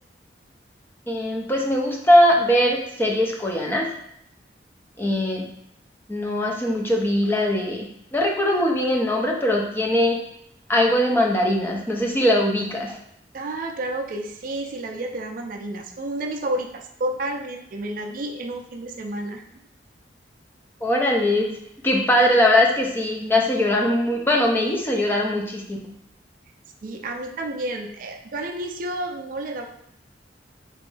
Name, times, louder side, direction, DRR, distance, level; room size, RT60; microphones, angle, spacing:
voice 1, 1.1-3.9 5.0-5.4 6.1-10.2 10.7-13.0 20.8-21.5 21.8-25.8, left 1 dB, 10° left, 0 dB, 0.5 m, -21 dB
voice 2, 13.3-19.4 26.8-29.7, right 1 dB, 50° right, 3 dB, 0.4 m, -30 dB
3.3 x 3.0 x 3.2 m, 0.72 s
head